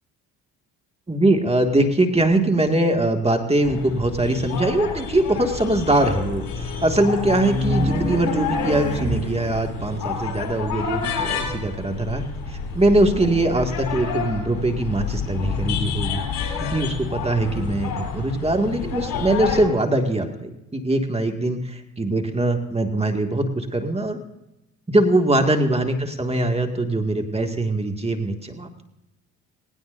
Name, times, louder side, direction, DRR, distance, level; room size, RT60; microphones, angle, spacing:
voice 1, 1.1-16.2 16.6-24.2 24.9-28.8, right 1 dB, 15° right, 3 dB, 2.1 m, -22 dB
sound 1, 3.6-19.7, left 6 dB, 60° left, 3.7 m, -30 dB
Race car auto racing, 5.5-9.6, left 1 dB, 20° left, 2.5 m, -28 dB
sound 2, 8.8-18.7, right 2 dB, 70° right, 4.0 m, -40 dB
18.5 x 17.5 x 2.7 m, 0.93 s
supercardioid pair, 65°, 37 cm